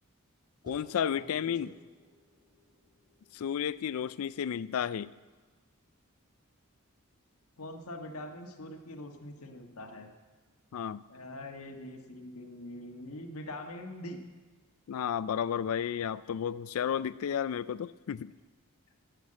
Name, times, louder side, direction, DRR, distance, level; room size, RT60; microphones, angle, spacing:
voice 1, 0.6-1.7 3.3-5.1 10.7-11.0 14.9-18.3, left 8 dB, 70° left, 18 dB, 0.3 m, -32 dB
sound 1, 0.7-5.4, left 3 dB, 20° right, 3.6 m, -57 dB
voice 2, 7.6-10.1 11.1-14.2, left 1 dB, 85° left, 3 dB, 1.4 m, -43 dB
11.5 x 8.1 x 8.6 m, 1.3 s
head